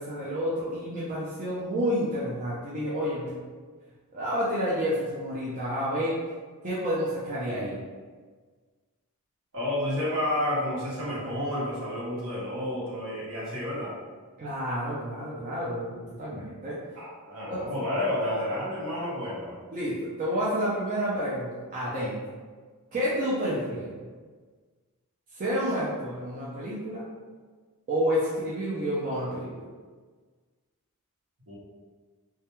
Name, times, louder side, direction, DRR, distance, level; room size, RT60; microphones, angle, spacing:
voice 1, 0.0-3.3 4.1-6.2 6.6-7.8 14.4-16.8 17.5-17.6 19.7-22.2 22.9-23.9 25.3-27.0 27.9-29.6, equal, 35° right, -8 dB, 0.4 m, -29 dB
voice 2, 9.5-13.9 16.9-19.6 31.5-31.6, left 1 dB, 65° right, -7 dB, 0.9 m, -30 dB
2.3 x 2.2 x 2.9 m, 1.5 s
head